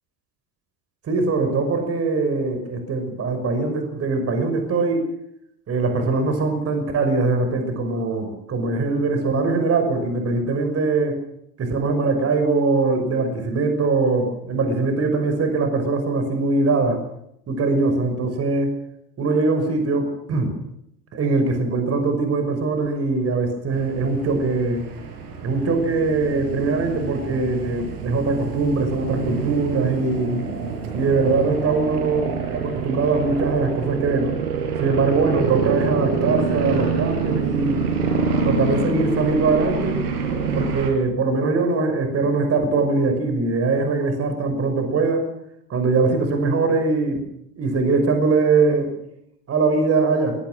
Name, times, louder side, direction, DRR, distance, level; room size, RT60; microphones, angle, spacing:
voice 1, 1.1-5.1 5.7-11.2 11.6-17.0 17.5-18.8 19.2-20.6 21.1-24.8 25.4-30.4 30.9-34.4 34.8-37.8 38.4-40.0 40.5-45.3 45.7-47.2 47.6-48.9 49.5-50.4, right 3 dB, 30° right, 6 dB, 5.9 m, -22 dB
sound 1, 23.7-40.9, right 5 dB, 65° right, 7.0 m, -26 dB
26.0 x 20.0 x 6.3 m, 0.76 s
hypercardioid pair, 95°, 48 cm